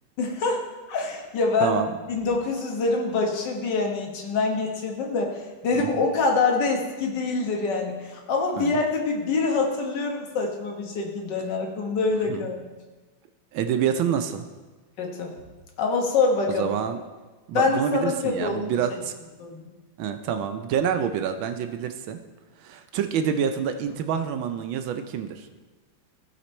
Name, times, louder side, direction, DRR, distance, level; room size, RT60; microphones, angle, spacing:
voice 1, 0.2-1.8 2.1-12.7 15.0-15.3 15.8-16.7 17.5-18.8 19.4-19.6, left 3 dB, 60° left, 1 dB, 1.8 m, -25 dB
voice 2, 5.7-6.0 8.6-8.7 12.3-12.5 13.5-14.4 16.6-17.0 17.5-19.1 20.0-22.2 22.6-25.5, right 8 dB, 75° right, 8 dB, 1.3 m, -27 dB
15.0 x 5.1 x 4.3 m, 1.3 s
omnidirectional pair, 2.3 m